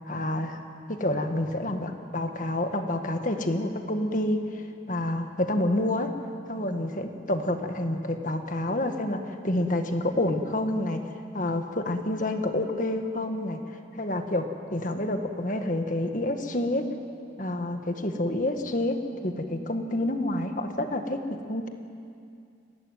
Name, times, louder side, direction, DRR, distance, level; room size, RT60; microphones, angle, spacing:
voice 1, 0.1-0.6 0.9-6.1 6.5-11.0 11.3-13.6 13.9-14.4 14.7-16.8 17.4-19.0 19.2-21.7, left 1 dB, 40° left, 5 dB, 1.7 m, -28 dB
23.5 x 17.5 x 9.4 m, 2.4 s
head